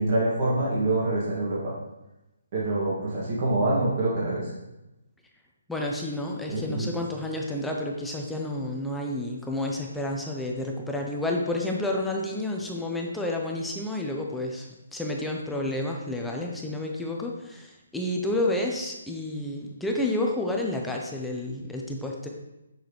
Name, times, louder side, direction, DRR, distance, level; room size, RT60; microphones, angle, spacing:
voice 1, 0.0-1.7 2.5-4.5 6.5-6.9, right 2 dB, 40° right, -7 dB, 2.0 m, -25 dB
voice 2, 5.7-22.3, left 1 dB, 5° left, 0 dB, 0.6 m, -30 dB
6.7 x 6.1 x 3.2 m, 0.95 s
hypercardioid pair, 150°, 0 cm